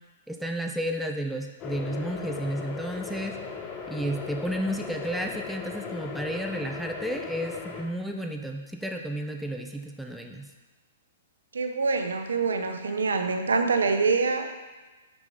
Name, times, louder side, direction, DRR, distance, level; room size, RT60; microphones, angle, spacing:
voice 1, 0.3-3.4 3.9-10.5, equal, ahead, 3 dB, 0.4 m, -32 dB
sound 1, 1.6-7.8, left 5 dB, 25° left, 0.8 m, -37 dB
voice 2, 11.5-14.5, right 4 dB, 70° right, 7 dB, 0.6 m, -25 dB
6.0 x 5.3 x 3.5 m, 1.2 s
figure-of-eight pair, 110°, 0 cm